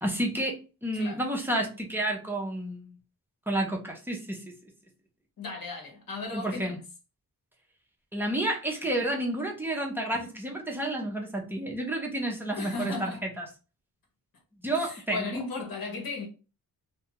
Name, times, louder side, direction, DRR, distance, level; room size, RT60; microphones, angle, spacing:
voice 1, 0.0-0.6 0.8-2.9 3.5-4.4 6.3-6.8 8.1-13.5 14.6-15.3, right 1 dB, 5° right, 0.6 m, -30 dB
voice 2, 5.4-6.8 12.5-13.2 14.8-16.3, left 3 dB, 65° left, 1.2 m, -36 dB
2.7 x 2.3 x 2.9 m
wide cardioid pair, 130°, 37 cm